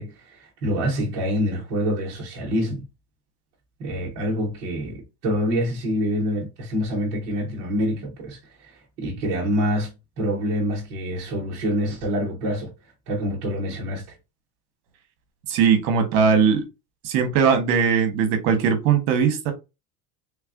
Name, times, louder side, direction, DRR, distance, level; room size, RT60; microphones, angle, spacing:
voice 1, 0.0-2.8 3.8-9.9 10.2-12.7 13.1-14.1, equal, 20° right, 0.3 m, -26 dB
voice 2, 15.5-16.6 17.0-19.5, right 6 dB, 40° right, 0.8 m, -19 dB
3.3 x 2.4 x 3.4 m
supercardioid pair, 175°, 45 cm